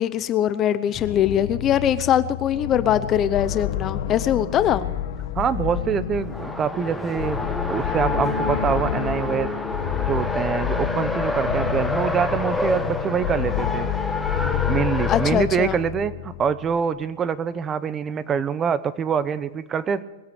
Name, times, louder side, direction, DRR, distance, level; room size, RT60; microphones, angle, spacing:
voice 1, 0.0-4.9 15.1-15.8, left 10 dB, 30° left, 14 dB, 0.7 m, -22 dB
sound 1, 0.9-16.6, left 10 dB, 65° left, 1.7 m, -29 dB
voice 2, 5.3-9.5 10.0-13.9 14.7-20.0, right 7 dB, 25° right, 15 dB, 0.8 m, -25 dB
Race car auto racing, 6.2-15.4, left 2 dB, 5° left, 1.2 m, -28 dB
21.0 x 8.0 x 8.4 m, 1.1 s
hypercardioid pair, 130°, 0 cm